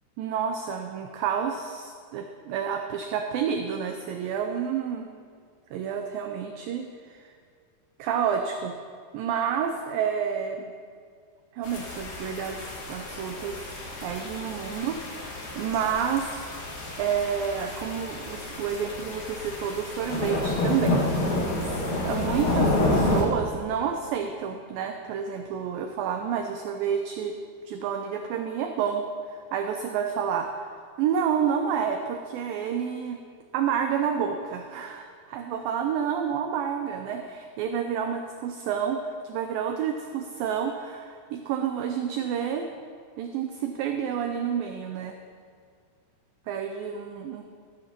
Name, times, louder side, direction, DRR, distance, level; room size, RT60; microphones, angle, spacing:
voice 1, 0.2-5.1 5.7-7.3 8.0-8.8 9.1-10.7 11.5-12.6 12.9-15.3 15.6-16.3 17.0-27.4 27.7-33.2 33.5-42.7 43.2-45.2 46.5-47.4, right 7 dB, 80° right, 5 dB, 2.1 m, -29 dB
sound 1, 11.6-23.2, left 2 dB, 50° left, 2.7 m, -29 dB
14.5 x 14.5 x 2.9 m, 2.1 s
omnidirectional pair, 4.7 m